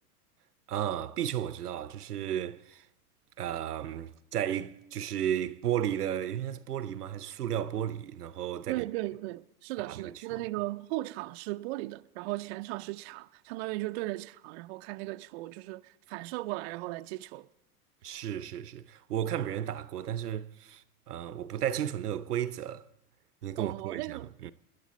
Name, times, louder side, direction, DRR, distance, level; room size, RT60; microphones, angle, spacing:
voice 1, 0.7-2.9 3.4-8.8 9.8-10.4 18.0-22.8 23.4-24.5, right 10 dB, 85° right, 0.7 m, -34 dB
voice 2, 8.7-17.5 23.6-24.3, right 19 dB, 45° right, 0.5 m, -37 dB
26.0 x 10.5 x 4.1 m
hypercardioid pair, 90°, 45 cm